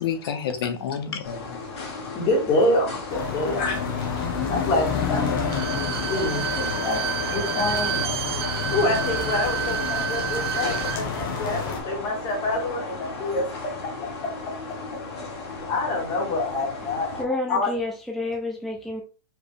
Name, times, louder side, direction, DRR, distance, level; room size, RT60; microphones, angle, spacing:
voice 1, 0.0-2.1, left 7 dB, 70° left, 1.0 m, -30 dB
sound 1, 1.2-17.2, left 3 dB, 90° left, 2.2 m, -36 dB
voice 2, 2.1-3.8 4.5-7.0 7.3-8.2 8.7-13.5 15.7-17.7, left 2 dB, 30° left, 2.0 m, -26 dB
sound 2, 3.1-11.8, left 5 dB, 55° left, 1.4 m, -29 dB
Bowed string instrument, 5.4-11.0 11.3-11.4, right 10 dB, 75° right, 0.5 m, -29 dB
voice 3, 17.2-19.0, left 2 dB, ahead, 0.4 m, -29 dB
4.8 x 3.2 x 3.3 m
hypercardioid pair, 150°, 13 cm